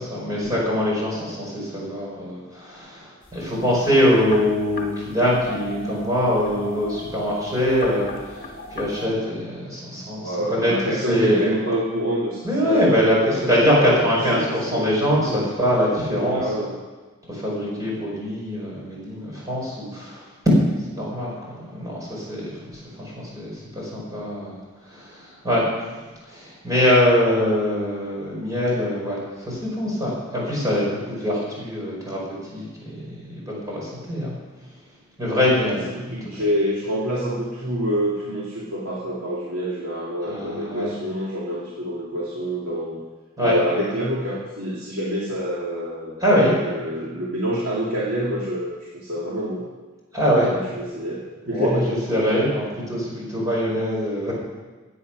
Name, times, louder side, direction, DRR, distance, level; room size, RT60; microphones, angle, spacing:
voice 1, 0.0-8.4 8.7-10.7 11.0-11.5 12.4-16.7 17.3-20.2 20.9-25.6 26.3-34.3 35.2-36.2 40.3-40.9 43.4-43.6 46.2-46.5 50.1-50.5 51.5-54.3, equal, 15° right, -5 dB, 5.1 m, -23 dB
sound 1, 3.2-9.1, left 2 dB, 45° left, 2.0 m, -38 dB
voice 2, 9.9-14.9 15.3-15.5 16.1-16.7 35.9-43.0 43.4-46.1 46.6-49.6 50.4-51.2 51.5-51.9, equal, 90° right, -6 dB, 2.3 m, -27 dB
16.0 x 8.8 x 6.1 m, 1.3 s
head